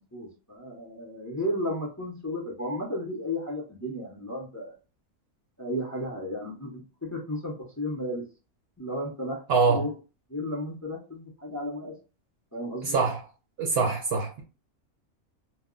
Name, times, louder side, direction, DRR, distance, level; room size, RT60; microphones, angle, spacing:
voice 1, 0.1-4.8 5.6-8.2 8.8-9.4 9.7-9.9 10.3-11.9 12.5-13.0, left 1 dB, 20° left, 0.6 m, -33 dB
voice 2, 9.5-9.9 12.9-13.2 13.6-14.4, right 4 dB, 65° right, 0.7 m, -24 dB
2.3 x 2.0 x 3.6 m
omnidirectional pair, 1.3 m